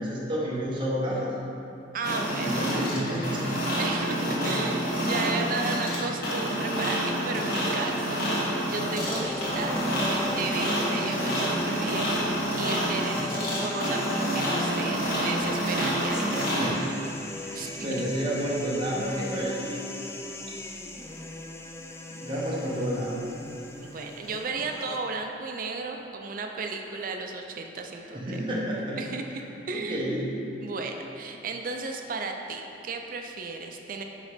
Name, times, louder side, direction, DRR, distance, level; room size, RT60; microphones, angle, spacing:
voice 1, 0.0-1.3 2.3-3.8 4.4-4.5 13.1-13.5 16.6-19.8 22.1-23.1 28.1-29.0 29.7-30.3, equal, 25° right, -6 dB, 1.2 m, -31 dB
voice 2, 1.9-2.8 3.8-9.7 10.0-16.7 17.5-18.0 23.8-28.4 29.0-30.1 30.6-34.0, right 4 dB, 50° right, 3 dB, 0.4 m, -34 dB
sound 1, 2.0-16.7, equal, 50° left, 1.5 m, -28 dB
sound 2, 9.0-25.0, left 2 dB, 15° left, 0.3 m, -39 dB
8.8 x 3.1 x 5.0 m, 2.8 s
head